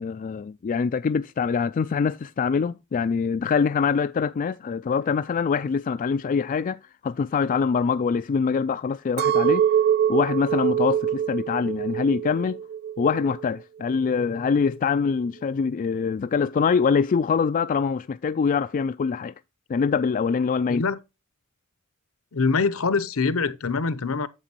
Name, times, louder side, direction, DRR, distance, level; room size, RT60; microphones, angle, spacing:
voice 1, 0.0-9.7 10.1-12.6 13.0-19.3 19.7-20.8, left 5 dB, 35° left, 0.3 m, -24 dB
Chink clink, 9.2-13.5 13.9-14.5, right 9 dB, 45° right, 0.3 m, -24 dB
voice 2, 20.7-21.0 22.3-24.3, left 4 dB, 70° left, 0.7 m, -24 dB
8.7 x 7.4 x 2.9 m
head